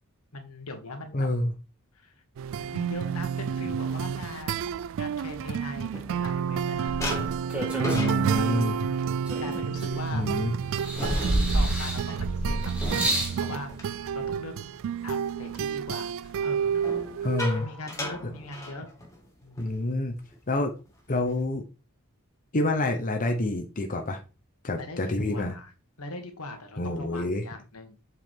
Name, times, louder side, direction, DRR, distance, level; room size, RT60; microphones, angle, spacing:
voice 1, 0.3-1.3 1.9-2.1 2.6-4.7 5.0-8.8 9.4-10.3 11.0-13.7 14.1-14.7 15.0-16.8 17.5-18.9 19.4-19.7 24.7-25.7 26.0-28.0, left 2 dB, 75° left, 5 dB, 1.6 m, -41 dB
voice 2, 1.1-1.5 7.9-8.8 10.1-10.5 17.2-17.7 19.6-20.1 20.5-20.7 21.1-21.6 22.5-24.2 24.6-25.5 26.8-27.4, left 2 dB, 40° left, 4 dB, 0.9 m, -27 dB
sound 1, 2.4-17.4, right 7 dB, 60° right, 0.3 m, -30 dB
sound 2, 5.1-6.6 7.0-14.8 15.2-15.5 16.7-19.3 19.6-19.8 20.1-20.4 20.9-21.5, left 1 dB, 15° left, 2.0 m, -38 dB
sound 3, 6.9-8.7 9.3-10.3 10.8-13.4 14.3-14.4, right 1 dB, 5° right, 2.0 m, -29 dB
7.6 x 4.8 x 3.7 m, 0.31 s
head